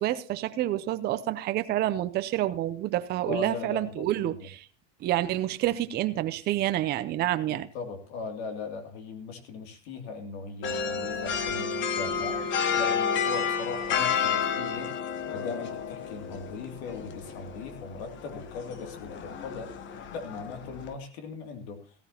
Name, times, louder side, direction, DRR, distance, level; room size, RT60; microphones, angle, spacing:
voice 1, 0.0-4.6 5.0-7.7, right 13 dB, 30° right, 0.6 m, -28 dB
voice 2, 3.2-4.5 7.5-12.4 12.8-14.9 15.3-19.7 20.1-21.9, left 4 dB, 65° left, 2.7 m, -39 dB
sound 1, 10.6-20.9, left 6 dB, 35° left, 1.1 m, -31 dB
15.0 x 14.0 x 2.9 m
supercardioid pair, 135°, 34 cm